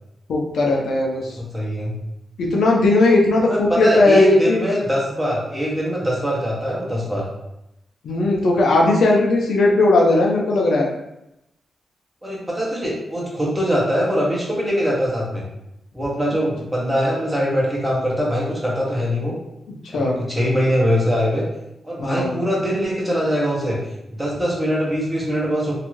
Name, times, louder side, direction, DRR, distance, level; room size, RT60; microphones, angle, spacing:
voice 1, 0.3-1.4 2.4-4.6 8.0-10.9 19.9-20.2 22.0-22.4, left 2 dB, 80° left, -1 dB, 0.5 m, -17 dB
voice 2, 1.4-1.9 3.4-7.2 12.2-15.5 15.9-19.3 19.9-21.4 21.8-23.8 24.1-25.8, equal, 5° right, -5 dB, 0.7 m, -22 dB
2.6 x 2.3 x 2.9 m, 0.86 s
wide cardioid pair, 150°, 0 cm